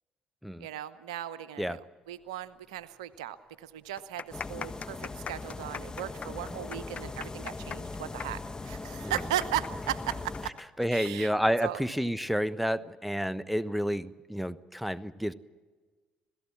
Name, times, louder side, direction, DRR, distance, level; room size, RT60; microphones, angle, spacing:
voice 1, 0.6-10.5 10.9-11.3 11.6-11.8, right 12 dB, 90° right, 14 dB, 0.9 m, -37 dB
sound 1, 2.8-2.9 3.1-3.2 3.9-11.1 11.4-11.5 12.3-12.5, left 6 dB, 45° left, 0.9 m, -41 dB
sound 2, 4.3-10.5, left 3 dB, 25° left, 1.3 m, -40 dB
voice 2, 10.8-15.3, equal, ahead, 15 dB, 1.1 m, -30 dB
26.5 x 17.0 x 7.3 m, 1.4 s
hypercardioid pair, 55°, 3 cm